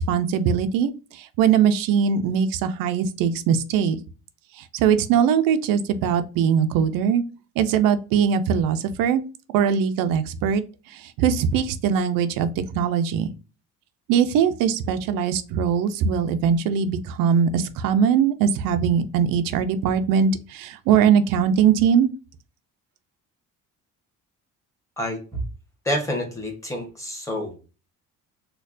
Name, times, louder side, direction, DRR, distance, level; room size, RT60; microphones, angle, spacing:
voice 1, 0.0-4.0 4.5-7.2 7.6-9.2 9.5-13.3 14.1-22.1, right 7 dB, 80° right, 9 dB, 0.5 m, -21 dB
voice 2, 25.0-25.4 25.8-27.6, equal, 10° left, 1 dB, 1.1 m, -28 dB
4.3 x 2.3 x 2.5 m, 0.33 s
cardioid pair, 115°, 33 cm